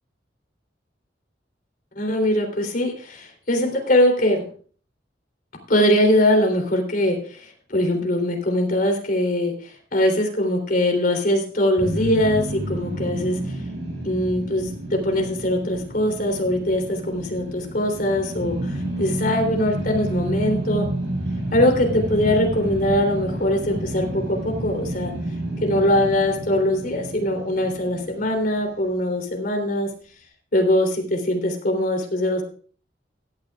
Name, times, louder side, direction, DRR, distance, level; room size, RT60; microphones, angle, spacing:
voice 1, 1.9-4.4 5.7-13.6 14.0-20.9 21.5-25.1 25.6-29.9 30.5-32.4, left 1 dB, 50° left, 3 dB, 3.4 m, -22 dB
sound 1, 11.8-29.0, right 1 dB, 85° right, 6.5 m, -30 dB
16.5 x 12.0 x 2.4 m, 0.42 s
head